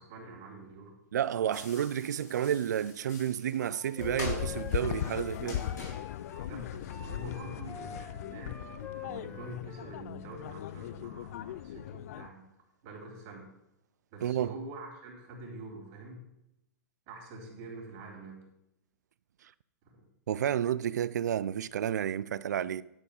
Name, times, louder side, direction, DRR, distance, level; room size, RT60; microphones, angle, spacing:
voice 1, 0.0-1.0 6.4-12.4 12.8-13.5 14.1-16.2 17.1-18.4 19.9-20.0, right 1 dB, 45° right, 3.5 m, -45 dB
voice 2, 1.1-5.7 14.2-14.5 20.3-22.8, right 10 dB, 80° right, 0.4 m, -31 dB
sound 1, 1.5-7.2, left 3 dB, 85° left, 4.1 m, -47 dB
Wind instrument woodwind instrument, 3.7-6.5 6.9-10.0, left 4 dB, 25° left, 1.4 m, -47 dB
sound 2, 4.0-12.3, left 12 dB, 65° left, 0.4 m, -38 dB
10.5 x 4.6 x 6.5 m
hypercardioid pair, 125°, 9 cm